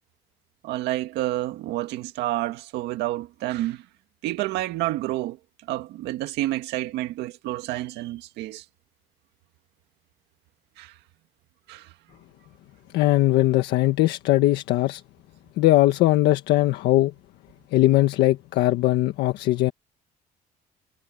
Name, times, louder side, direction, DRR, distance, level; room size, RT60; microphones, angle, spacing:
voice 1, 0.6-3.8 4.2-5.4 5.7-8.6 10.8-10.9 11.7-11.9, right 16 dB, 90° right, 1.9 m, -29 dB
voice 2, 12.9-15.0 15.6-17.1 17.7-19.7, left 16 dB, 85° left, 1.5 m, -20 dB
cardioid pair, 110°, 17 cm